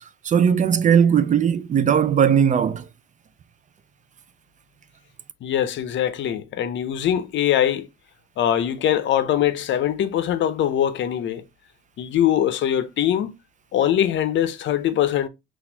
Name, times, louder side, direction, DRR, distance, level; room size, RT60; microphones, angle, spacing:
voice 1, 0.2-2.9, right 8 dB, 40° right, 0.4 m, -18 dB
voice 2, 5.4-7.9 8.4-11.4 12.0-13.3 13.7-15.3, left 10 dB, 70° left, 0.6 m, -22 dB
4.1 x 2.4 x 2.7 m
cardioid pair, 90°, 20 cm